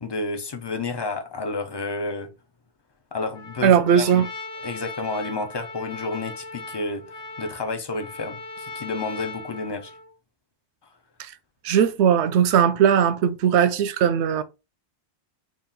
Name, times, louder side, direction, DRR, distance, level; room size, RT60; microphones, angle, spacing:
voice 1, 0.0-2.3 3.1-4.3 4.6-7.0 7.4-9.9, left 3 dB, 40° left, 0.4 m, -30 dB
Trumpet, 3.3-10.1, left 3 dB, 55° left, 0.9 m, -39 dB
voice 2, 3.6-4.3 11.6-14.4, right 8 dB, 80° right, 0.8 m, -19 dB
3.7 x 2.4 x 3.8 m
omnidirectional pair, 1.1 m